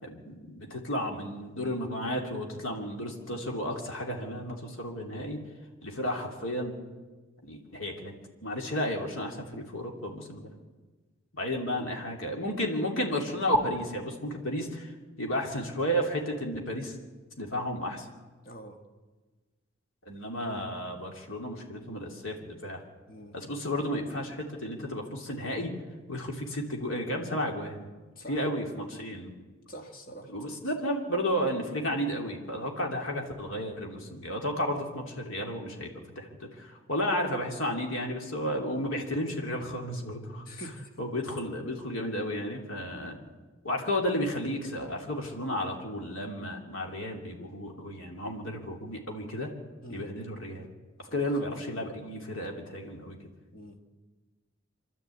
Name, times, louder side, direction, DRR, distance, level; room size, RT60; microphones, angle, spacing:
voice 1, 0.0-5.4 5.8-6.8 7.4-8.1 8.4-10.5 11.3-14.9 15.2-17.0 17.4-18.1 20.1-22.8 23.3-25.7 26.1-27.8 28.3-29.3 30.3-40.7 41.0-43.2 43.6-49.5 49.9-50.7 51.1-53.2, equal, 70° left, 1 dB, 2.9 m, -33 dB
voice 2, 18.4-18.8 23.1-23.4 23.8-23.9 28.2-28.5 29.7-30.3 40.4-40.9 49.8-50.1 51.1-51.3 53.5-53.8, equal, 40° left, 3 dB, 1.9 m, -45 dB
25.0 x 12.5 x 8.5 m, 1.3 s
head